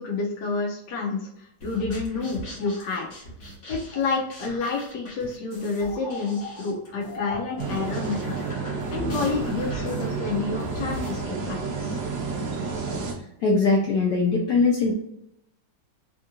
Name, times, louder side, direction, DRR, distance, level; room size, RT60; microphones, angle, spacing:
voice 1, 0.0-3.1 3.7-8.4 8.9-12.0, left 4 dB, 70° left, -2 dB, 1.0 m, -29 dB
sound 1, 1.6-11.2, left 2 dB, 50° left, 1.3 m, -40 dB
sound 2, 7.6-13.1, right 4 dB, 90° right, 0.7 m, -30 dB
voice 2, 13.4-14.9, left 3 dB, 85° left, -2 dB, 0.8 m, -21 dB
3.5 x 2.5 x 2.7 m, 0.78 s
omnidirectional pair, 2.4 m